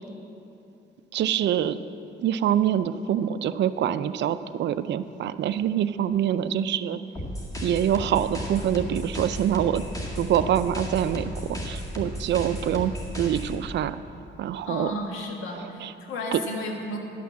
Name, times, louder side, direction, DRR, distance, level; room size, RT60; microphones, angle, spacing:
voice 1, 1.1-1.8 2.2-7.0 7.6-9.8 10.2-14.0 14.4-14.9 15.5-15.9 16.3-16.4, right 10 dB, 65° right, 13 dB, 0.4 m, -25 dB
sound 1, 7.2-13.5, equal, 15° left, 2.1 m, -34 dB
voice 2, 14.6-17.0, left 1 dB, 85° left, 1 dB, 1.6 m, -33 dB
11.0 x 5.9 x 7.3 m, 2.8 s
cardioid pair, 90°, 20 cm